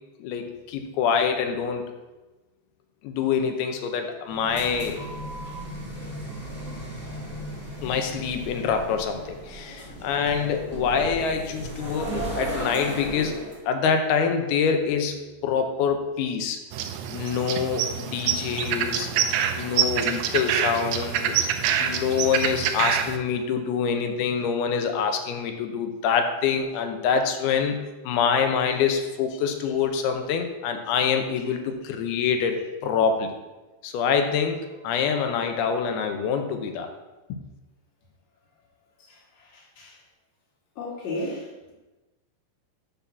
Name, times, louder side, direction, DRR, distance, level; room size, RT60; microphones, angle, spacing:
voice 1, 0.2-1.9 3.0-5.0 7.8-13.4 13.7-15.2 15.4-16.6 17.1-19.1 19.5-21.3 21.8-33.3 33.8-36.9 37.3-37.4, left 6 dB, 75° left, 5 dB, 2.6 m, -25 dB
sound 1, 4.3-13.6, right 1 dB, 10° left, 0.9 m, -35 dB
sound 2, 16.7-23.2, right 8 dB, 80° right, 2.7 m, -26 dB
voice 2, 39.0-40.0 40.8-41.7, left 1 dB, 40° left, -5 dB, 3.3 m, -35 dB
10.0 x 4.2 x 6.9 m, 1.1 s
omnidirectional pair, 4.9 m